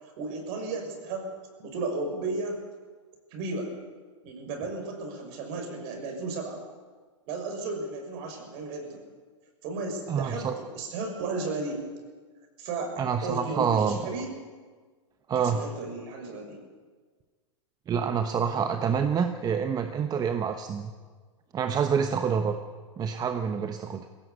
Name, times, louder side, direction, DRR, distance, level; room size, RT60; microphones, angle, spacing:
voice 1, 0.2-1.3 1.6-2.6 3.3-3.7 4.2-6.6 7.3-9.0 9.6-11.9 12.6-14.3 15.3-16.6, right 3 dB, 50° right, 4 dB, 6.2 m, -34 dB
voice 2, 10.1-10.5 13.0-14.0 15.3-15.6 17.9-20.9 21.5-22.6 23.0-24.1, right 7 dB, 25° right, 7 dB, 1.1 m, -27 dB
20.0 x 17.0 x 8.3 m, 1.5 s
hypercardioid pair, 110°, 16 cm